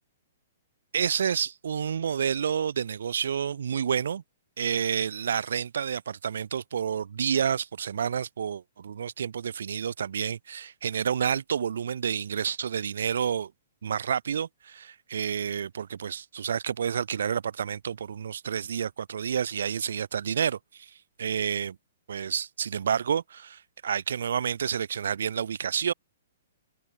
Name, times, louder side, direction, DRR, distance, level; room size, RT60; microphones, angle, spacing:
voice 1, 0.9-4.2 4.6-13.5 13.8-20.9 21.2-21.8 22.1-25.9, right 7 dB, 80° right, 0.7 m, -29 dB
hypercardioid pair, 165°, 0 cm